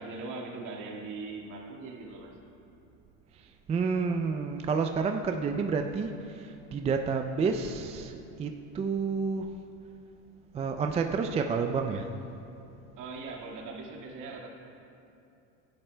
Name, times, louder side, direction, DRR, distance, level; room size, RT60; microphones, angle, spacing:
voice 1, 0.0-2.4 13.0-14.5, right 3 dB, 55° right, -1 dB, 1.9 m, -40 dB
voice 2, 3.3-9.5 10.5-12.1, right 5 dB, 20° right, 5 dB, 0.3 m, -30 dB
17.0 x 11.5 x 2.2 m, 2.7 s
supercardioid pair, 120°, 37 cm